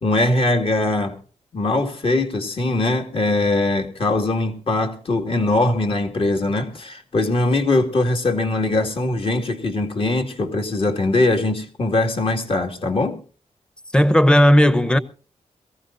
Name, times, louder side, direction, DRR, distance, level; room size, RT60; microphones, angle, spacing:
voice 1, 0.0-1.2 1.5-13.2, left 2 dB, 45° left, 2.2 m, -21 dB
voice 2, 13.9-15.0, equal, 5° left, 0.9 m, -14 dB
22.5 x 15.5 x 2.6 m
wide cardioid pair, 90°, 13 cm